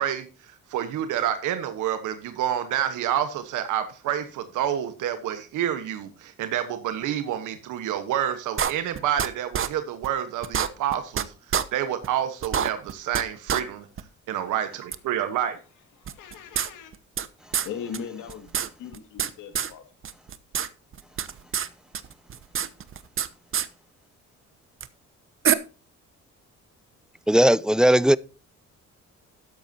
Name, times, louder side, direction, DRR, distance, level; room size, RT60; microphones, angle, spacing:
voice 1, 0.0-11.3 11.7-13.9 14.3-15.6, right 10 dB, 90° right, 1.3 m, -28 dB
sound 1, 8.6-9.3 9.5-9.7 10.0-10.1 10.4-11.2 11.5-11.6 12.0-12.1 12.4-13.2 13.5-13.6 14.0-14.1 14.9-15.0 16.1-17.3 17.5-17.7 17.9-18.0 18.3-19.3 19.5-19.7 20.0-20.7 20.9-21.7 21.9-23.3 23.5-23.7 24.8-24.9 25.4-25.5, right 8 dB, 45° right, 0.9 m, -26 dB
voice 2, 16.0-16.9 17.4-19.9, left 7 dB, 90° left, 2.4 m, -39 dB
voice 3, 27.3-28.2, equal, ahead, 0.4 m, -17 dB
13.0 x 9.2 x 2.8 m
cardioid pair, 90°, 30 cm